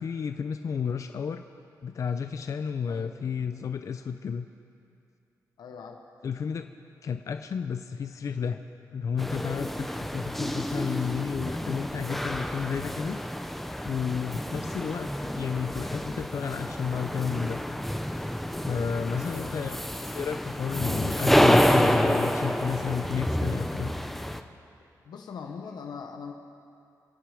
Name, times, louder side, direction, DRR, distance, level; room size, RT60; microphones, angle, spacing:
voice 1, 0.0-1.4 1.8-4.5 6.2-6.7 7.0-8.6 8.9-13.2 13.8-17.6 18.6-23.9, left 6 dB, 50° left, 8 dB, 0.5 m, -32 dB
voice 2, 5.6-6.0 14.3-14.4 19.3-19.9 25.1-26.4, left 6 dB, 85° left, 3 dB, 1.0 m, -41 dB
sound 1, 9.2-24.4, equal, 5° left, 0.6 m, -28 dB
27.5 x 9.2 x 5.0 m, 2.5 s
wide cardioid pair, 125°, 7 cm